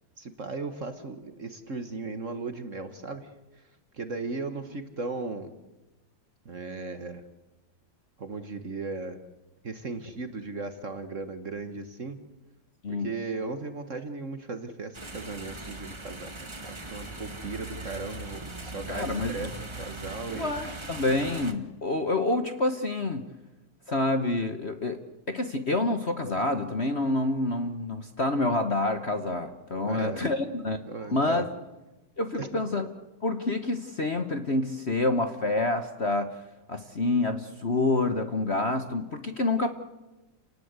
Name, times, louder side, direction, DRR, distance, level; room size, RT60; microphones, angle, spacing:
voice 1, 0.2-3.3 3.9-5.5 6.4-7.2 8.2-9.2 9.6-12.2 12.9-16.3 16.7-19.5 19.8-20.5 29.8-30.2 30.9-31.4 32.3-32.6, right 3 dB, 40° right, 9 dB, 1.5 m, -36 dB
sound 1, 14.9-21.5, right 2 dB, 15° right, 1.3 m, -40 dB
voice 2, 18.9-19.5 20.3-23.2 23.9-25.0 25.3-30.8 31.1-31.5 32.2-32.9 33.2-36.3 36.7-39.7, left 2 dB, 35° left, 7 dB, 1.2 m, -27 dB
30.0 x 19.0 x 8.2 m, 1.1 s
omnidirectional pair, 2.3 m